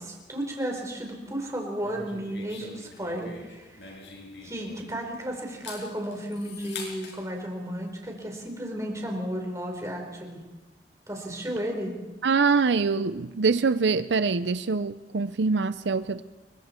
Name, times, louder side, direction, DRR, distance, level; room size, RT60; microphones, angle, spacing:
voice 1, 0.0-4.0 4.4-10.4 11.1-11.9, equal, 20° right, 1 dB, 4.2 m, -33 dB
sound 1, 1.8-5.1 5.5-7.2, left 3 dB, 75° left, 6.0 m, -43 dB
voice 2, 12.2-16.2, right 4 dB, 80° right, 13 dB, 0.6 m, -24 dB
29.0 x 23.0 x 4.5 m, 1.2 s
head